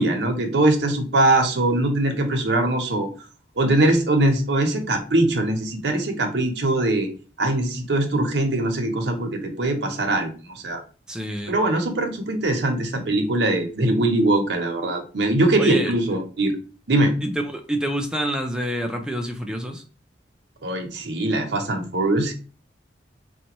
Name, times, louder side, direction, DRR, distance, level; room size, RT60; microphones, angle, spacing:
voice 1, 0.0-3.1 3.6-7.1 7.4-10.8 11.5-16.5 16.9-17.1 20.6-22.3, right 2 dB, 80° right, 0.8 m, -22 dB
voice 2, 11.1-11.5 15.6-15.9 17.2-19.8, right 1 dB, 5° right, 0.4 m, -27 dB
4.1 x 2.2 x 2.9 m
head